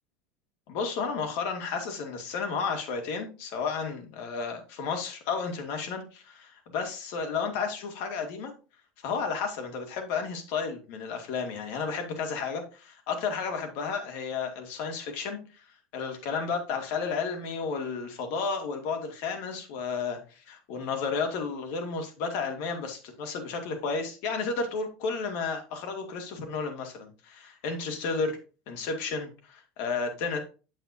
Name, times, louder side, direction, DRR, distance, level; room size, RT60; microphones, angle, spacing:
voice 1, 0.7-8.5 9.0-15.6 15.9-28.4 28.7-30.4, left 5 dB, 65° left, 4 dB, 2.1 m, -32 dB
7.8 x 7.5 x 2.7 m, 0.34 s
supercardioid pair, 150°, 5 cm